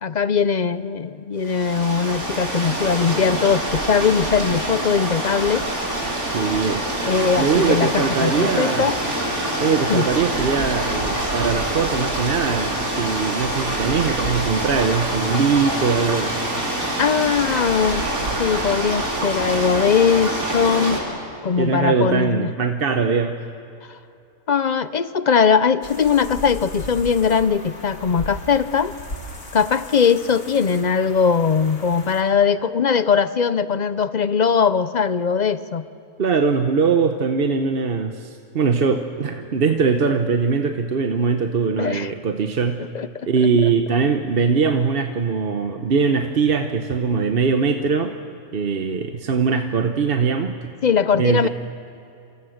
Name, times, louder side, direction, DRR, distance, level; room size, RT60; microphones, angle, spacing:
voice 1, 0.0-5.7 7.0-8.9 9.9-10.0 17.0-18.0 18.4-21.0 21.4-22.5 24.5-28.9 29.5-35.9 41.8-42.1 42.9-43.3 43.6-43.7 50.8-51.5, left 6 dB, 50° left, 13 dB, 0.5 m, -20 dB
sound 1, 1.4-21.0, right 1 dB, 80° right, 4.7 m, -25 dB
voice 2, 6.3-6.9 7.4-8.9 9.6-16.4 21.6-23.4 36.2-42.8 43.3-48.1 48.5-50.6 51.2-51.5, right 5 dB, 45° right, 6 dB, 1.0 m, -21 dB
sound 2, 25.8-32.2, left 1 dB, 70° left, 3.2 m, -37 dB
27.5 x 27.0 x 6.5 m, 2.8 s
omnidirectional pair, 1.5 m